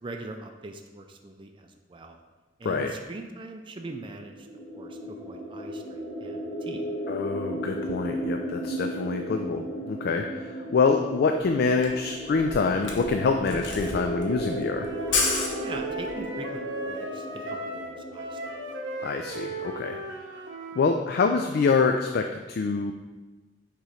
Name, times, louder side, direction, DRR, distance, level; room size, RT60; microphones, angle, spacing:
voice 1, 0.0-2.2 2.6-4.5 4.7-6.9 15.6-18.4, right 2 dB, 25° right, 4 dB, 0.4 m, -42 dB
sound 1, 4.2-19.9, right 1 dB, 30° left, 1.7 m, -35 dB
voice 2, 7.1-14.9 19.0-20.0 20.8-22.9, left 4 dB, 55° left, 5 dB, 0.3 m, -26 dB
Camera, 11.4-11.5 11.7-16.2, left 4 dB, 75° left, 0.9 m, -31 dB
Wind instrument woodwind instrument, 14.7-21.0, right 2 dB, 70° right, 0.8 m, -37 dB
6.5 x 3.1 x 4.9 m, 1.2 s
head